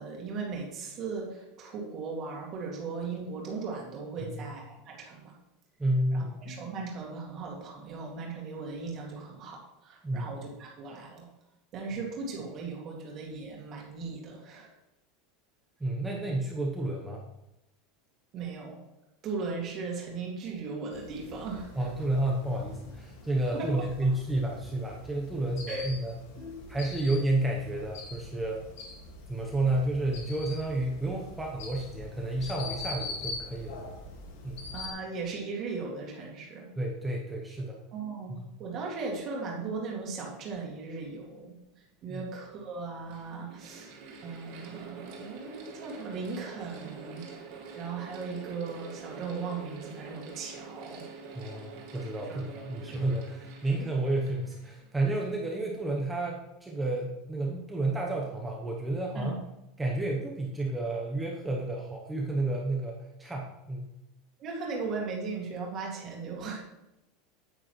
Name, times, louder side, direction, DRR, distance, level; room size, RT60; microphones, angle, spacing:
voice 1, 0.0-5.3 6.1-11.3 11.7-14.7 18.3-18.8 19.2-21.9 23.5-23.8 25.7-25.9 26.4-26.7 29.7-29.8 34.7-36.7 37.9-38.3 38.6-41.5 42.0-43.9 44.2-47.3 47.7-51.0 52.2-52.4 52.8-53.0 59.2-59.4 64.4-66.6, right 4 dB, 30° right, -1 dB, 2.0 m, -37 dB
voice 2, 5.8-6.3 10.0-10.3 15.8-17.2 21.7-26.1 26.7-28.6 29.3-33.8 34.4-34.7 36.8-37.8 38.4-38.5 42.1-42.2 51.3-59.4 59.8-63.9, right 2 dB, 5° right, -1 dB, 0.8 m, -31 dB
sound 1, 20.9-34.9, left 3 dB, 65° left, 1.8 m, -43 dB
Mechanical fan, 41.8-41.9 42.7-55.4, right 5 dB, 50° right, 2.2 m, -46 dB
9.3 x 8.8 x 3.1 m, 0.91 s
supercardioid pair, 180°, 0 cm